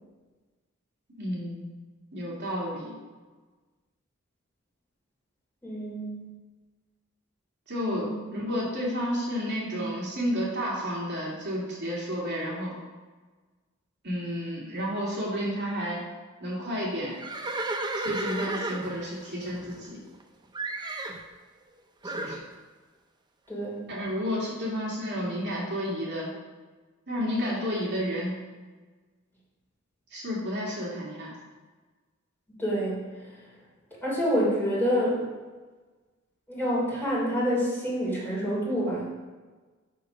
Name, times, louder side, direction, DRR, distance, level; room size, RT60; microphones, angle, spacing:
voice 1, 1.2-1.7 2.1-2.9 7.7-12.7 14.0-16.0 16.4-17.1 18.0-20.0 22.0-22.4 23.9-26.3 27.1-28.4 30.1-31.3, equal, 55° right, -5 dB, 2.3 m, -31 dB
voice 2, 5.6-6.3 8.0-8.1 23.5-23.9 32.5-33.2 34.0-35.3 36.5-39.0, equal, 10° left, -7 dB, 3.0 m, -27 dB
Livestock farm animals working animals, 17.1-20.2 20.5-21.2 22.0-22.4, right 2 dB, 20° right, 0.6 m, -33 dB
6.8 x 6.4 x 5.3 m, 1.3 s
head